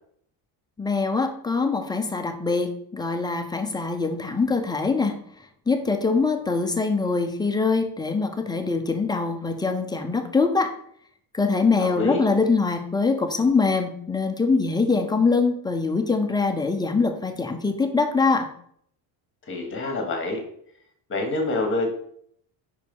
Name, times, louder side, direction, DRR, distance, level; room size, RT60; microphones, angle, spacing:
voice 1, 0.8-5.2 5.7-10.7 11.3-18.5, left 4 dB, 10° left, 5 dB, 0.4 m, -23 dB
voice 2, 11.8-12.2 19.4-20.4 21.1-21.9, left 2 dB, 25° left, 2 dB, 1.3 m, -26 dB
5.3 x 4.7 x 5.2 m, 0.65 s
cardioid pair, 165°, 45 cm